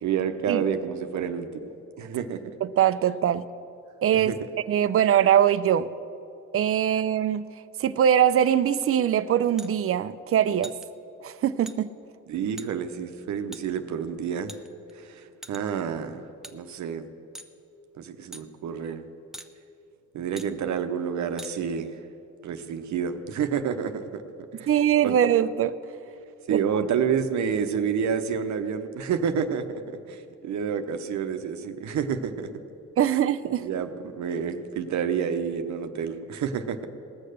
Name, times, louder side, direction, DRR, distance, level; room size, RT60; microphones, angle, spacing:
voice 1, 0.0-1.7 2.0-2.4 4.1-4.4 12.3-14.5 14.9-16.2 16.5-17.1 18.0-19.1 20.1-21.9 22.4-24.2 24.6-24.7 25.0-25.1 26.5-32.5 33.6-36.9, right 7 dB, 70° right, 8 dB, 0.9 m, -29 dB
voice 2, 2.6-3.4 4.0-4.3 4.7-5.9 6.5-7.5 7.8-10.7 11.2-11.9 24.7-25.7 26.5-26.6 33.0-33.6, right 10 dB, 50° right, 15 dB, 0.5 m, -22 dB
sound 1, 9.6-9.7 10.6-10.9 11.7-11.8 12.6-12.7 13.5-13.6 14.5-14.9 15.4-15.8 16.4-16.6 17.3-17.5 18.3-18.4 19.3-19.5 20.4-20.5 21.4-21.5, right 1 dB, ahead, 0.6 m, -42 dB
18.5 x 6.6 x 6.6 m, 2.6 s
cardioid pair, 90°, 30 cm